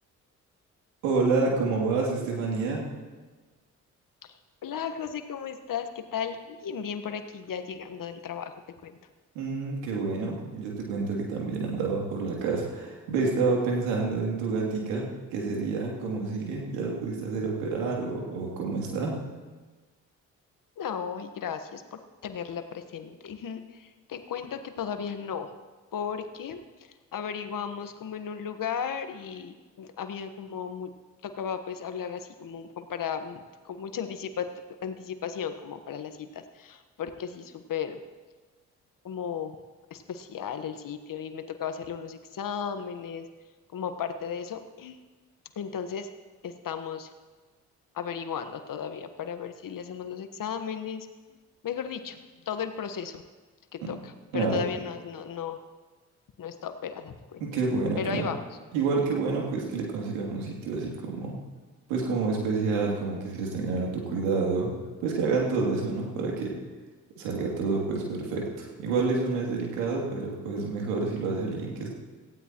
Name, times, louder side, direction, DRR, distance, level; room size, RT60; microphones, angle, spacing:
voice 1, 1.0-2.8 9.3-19.2 53.8-53.9 54.3-54.6 57.4-58.2 58.7-61.4 61.9-64.7 65.0-66.5 67.2-71.9, right 4 dB, 85° right, -2 dB, 3.0 m, -28 dB
voice 2, 4.6-8.5 8.8-9.0 20.8-25.5 25.9-30.9 31.2-34.5 34.8-38.0 39.0-39.6 39.9-43.3 43.7-45.0 45.5-46.1 46.4-47.1 47.9-51.1 51.6-52.2 52.5-53.2 53.7-55.6 56.4-57.4 58.0-58.4, left 7 dB, 55° left, 8 dB, 1.4 m, -35 dB
18.0 x 15.5 x 3.1 m, 1.3 s
hypercardioid pair, 45°, 40 cm